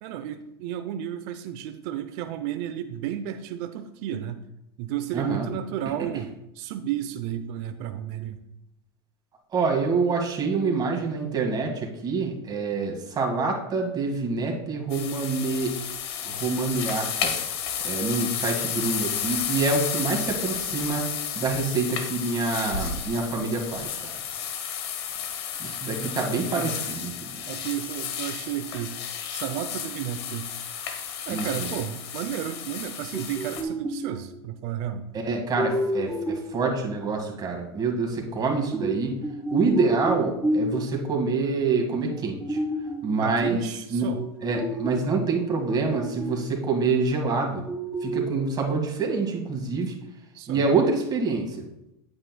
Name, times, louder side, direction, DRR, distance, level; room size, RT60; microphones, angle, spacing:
voice 1, 0.0-4.4 4.8-8.4 26.0-26.8 27.5-29.0 29.3-30.5 31.3-35.1 43.2-44.2 50.3-50.7, right 11 dB, 60° right, 9 dB, 0.6 m, -33 dB
voice 2, 5.1-5.5 9.5-15.8 16.2-17.3 17.8-21.1 21.4-24.2 25.6-27.4 31.3-31.7 35.1-39.2 39.5-42.6 43.0-43.6 43.9-44.1 44.4-47.6 48.0-49.9 50.5-51.6, right 4 dB, 30° right, 2 dB, 1.9 m, -26 dB
sound 1, 14.9-33.6, left 8 dB, 70° left, 1.2 m, -32 dB
sound 2, 33.1-34.3 35.6-36.5 38.4-41.0 42.1-43.2 44.1-46.5 46.8-46.9 47.7-48.2, right 1 dB, 5° right, 1.2 m, -30 dB
8.7 x 8.2 x 2.3 m, 0.85 s
hypercardioid pair, 105°, 14 cm